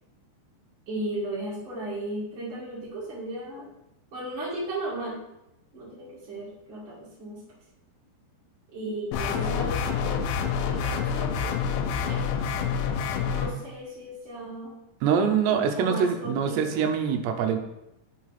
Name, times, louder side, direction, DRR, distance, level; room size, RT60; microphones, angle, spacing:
voice 1, 0.9-3.7 4.1-5.2 5.7-7.4 8.7-10.1 10.7-11.6 12.1-12.2 13.3-14.7 15.7-16.9, right 1 dB, 35° right, -10 dB, 2.3 m, -35 dB
sound 1, 9.1-13.5, left 7 dB, 85° left, 2.8 m, -27 dB
voice 2, 15.0-17.6, right 7 dB, 80° right, 6 dB, 2.9 m, -24 dB
6.1 x 4.8 x 5.7 m, 0.88 s
omnidirectional pair, 5.0 m